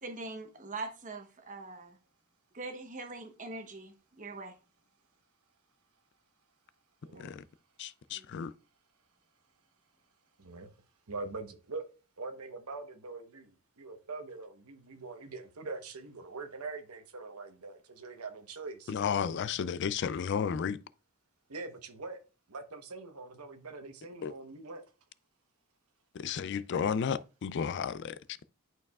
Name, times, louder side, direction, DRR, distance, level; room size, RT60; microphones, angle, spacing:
voice 1, 0.0-2.0 2.5-4.6 7.1-7.2 8.1-8.2, right 3 dB, 35° right, 1.0 m, -42 dB
voice 2, 7.0-7.4 10.4-10.7 11.1-11.8 12.2-18.9 21.5-22.2 22.5-24.8, right 3 dB, 80° right, 1.1 m, -43 dB
voice 3, 7.8-8.5 18.9-20.8 24.2-24.3 26.1-28.2, left 7 dB, 50° left, 0.3 m, -33 dB
11.0 x 4.7 x 2.4 m
head